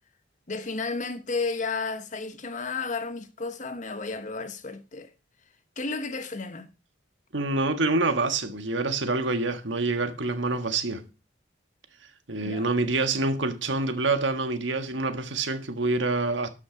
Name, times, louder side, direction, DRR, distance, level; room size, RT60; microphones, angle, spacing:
voice 1, 0.5-5.1 5.8-6.7 12.4-12.7, left 4 dB, 40° left, 1.1 m, -32 dB
voice 2, 7.3-11.0 12.3-16.5, right 3 dB, 75° right, 1.6 m, -26 dB
12.5 x 6.2 x 5.1 m
head